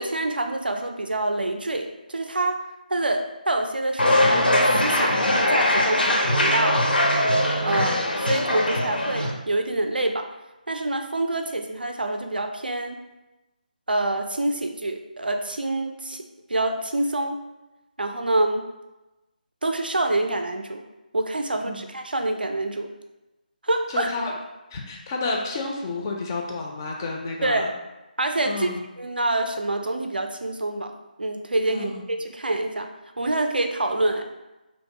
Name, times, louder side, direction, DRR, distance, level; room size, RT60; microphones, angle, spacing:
voice 1, 0.0-2.6 2.9-6.8 7.6-10.3 10.7-13.0 13.9-17.4 18.0-18.7 19.6-20.8 21.1-22.9 23.6-24.1 27.4-27.7 28.2-28.7 29.0-30.9 31.2-32.9 33.2-34.3, right 2 dB, 80° right, 5 dB, 0.4 m, -26 dB
sound 1, 4.0-9.3, left 1 dB, 80° left, 0.5 m, -21 dB
voice 2, 7.6-8.0 21.7-21.8 23.9-24.3 24.7-27.7 28.5-28.8 31.7-32.0, left 3 dB, 20° left, 0 dB, 0.3 m, -31 dB
2.9 x 2.0 x 3.5 m, 1.0 s
figure-of-eight pair, 155°, 5 cm